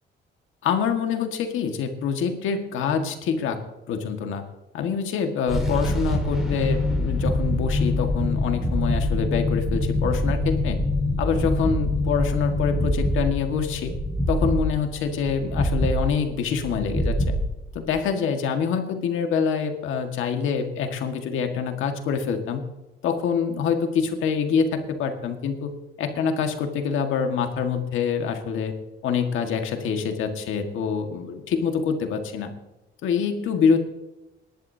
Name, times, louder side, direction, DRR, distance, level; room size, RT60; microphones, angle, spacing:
voice 1, 0.6-3.6 3.9-4.4 4.7-10.8 11.2-13.9 14.3-17.4 17.8-22.6 23.0-25.7 26.0-28.7 29.0-32.5 33.0-33.8, left 6 dB, 85° left, 5 dB, 1.7 m, -25 dB
sound 1, 5.5-18.0, left 1 dB, ahead, 4.6 m, -25 dB
19.5 x 11.0 x 2.8 m, 1.0 s
cardioid pair, 90°, 20 cm